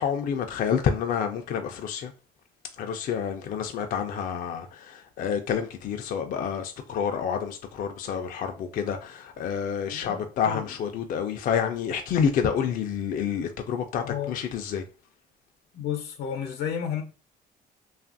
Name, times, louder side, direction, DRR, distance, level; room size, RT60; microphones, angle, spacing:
voice 1, 0.0-2.1 2.8-14.8, left 7 dB, 55° left, 0.4 m, -28 dB
voice 2, 9.9-10.7 14.0-14.4 15.7-17.0, left 8 dB, 85° left, 0.7 m, -32 dB
2.8 x 2.4 x 2.5 m
cardioid pair, 110°, 17 cm